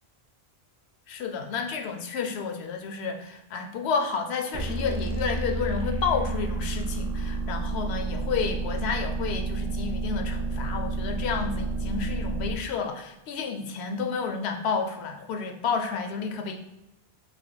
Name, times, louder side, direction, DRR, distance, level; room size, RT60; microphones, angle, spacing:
voice 1, 1.1-16.6, left 5 dB, 90° left, 5 dB, 0.8 m, -30 dB
sound 1, 4.5-12.6, right 3 dB, 50° right, 0.6 m, -30 dB
3.4 x 2.7 x 3.9 m, 0.94 s
omnidirectional pair, 1.1 m